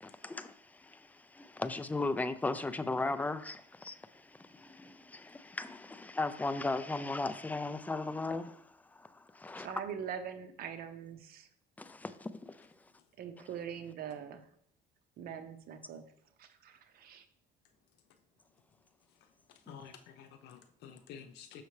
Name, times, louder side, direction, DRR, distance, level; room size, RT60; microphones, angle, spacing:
voice 1, 0.0-9.7 11.8-12.7 19.7-19.8, left 3 dB, 10° left, 0.4 m, -37 dB
voice 2, 9.6-11.5 13.2-14.5 15.2-16.1 16.4-17.3, right 8 dB, 65° right, 0.8 m, -43 dB
voice 3, 19.1-21.6, left 8 dB, 80° left, 0.8 m, -51 dB
6.7 x 5.6 x 3.2 m
cardioid pair, 110°, 17 cm